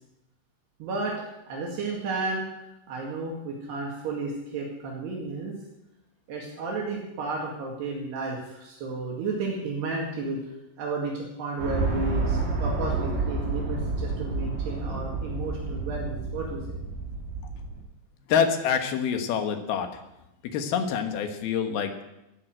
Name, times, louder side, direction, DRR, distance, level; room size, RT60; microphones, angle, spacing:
voice 1, 0.8-2.5 2.9-5.6 6.3-10.4 10.8-16.8, right 3 dB, 70° right, -2 dB, 4.1 m, -32 dB
sound 1, 11.6-17.8, right 3 dB, 45° right, 3.5 m, -30 dB
voice 2, 18.3-19.9 20.4-22.0, left 7 dB, 70° left, 6 dB, 2.9 m, -26 dB
14.0 x 9.8 x 7.7 m, 0.90 s
omnidirectional pair, 5.0 m